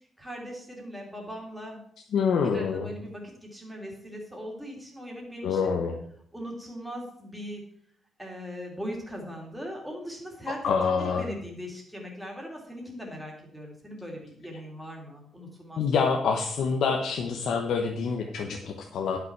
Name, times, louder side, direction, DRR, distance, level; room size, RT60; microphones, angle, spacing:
voice 1, 0.2-1.8 2.4-5.7 6.3-7.6 8.2-16.0, equal, 5° right, -1 dB, 2.6 m, -40 dB
voice 2, 2.1-2.9 5.4-6.0 10.6-11.2 15.8-19.2, left 5 dB, 70° left, 3 dB, 1.0 m, -26 dB
11.0 x 5.9 x 6.0 m, 0.66 s
cardioid pair, 160°, 0 cm